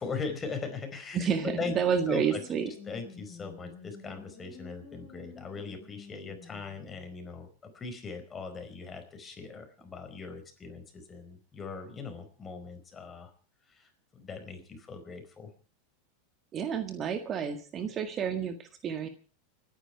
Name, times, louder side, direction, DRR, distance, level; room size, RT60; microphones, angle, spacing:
voice 1, 0.0-1.7 2.1-2.4 2.9-13.3 13.7-15.5, left 4 dB, 25° left, 6 dB, 4.8 m, -40 dB
voice 2, 1.1-2.7 16.5-19.1, right 7 dB, 35° right, 9 dB, 1.7 m, -30 dB
sound 1, 1.2-7.1, left 5 dB, 45° left, 5.6 m, -50 dB
29.5 x 10.0 x 4.7 m, 0.39 s
hypercardioid pair, 90°, 0 cm